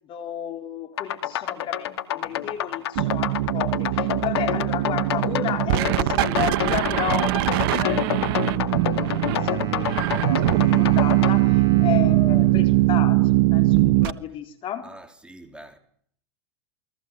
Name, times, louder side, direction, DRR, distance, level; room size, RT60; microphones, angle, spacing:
voice 1, 0.1-14.9, left 9 dB, 40° left, 4.2 m, -33 dB
sound 1, 1.0-11.3, left 11 dB, 75° left, 2.3 m, -28 dB
sound 2, 3.0-14.1, right 17 dB, 60° right, 1.2 m, -21 dB
Wind instrument woodwind instrument, 8.1-13.8, right 5 dB, 30° right, 6.4 m, -40 dB
voice 2, 14.8-15.8, right 1 dB, 5° right, 3.9 m, -45 dB
28.5 x 21.0 x 7.7 m
hypercardioid pair, 100°, 14 cm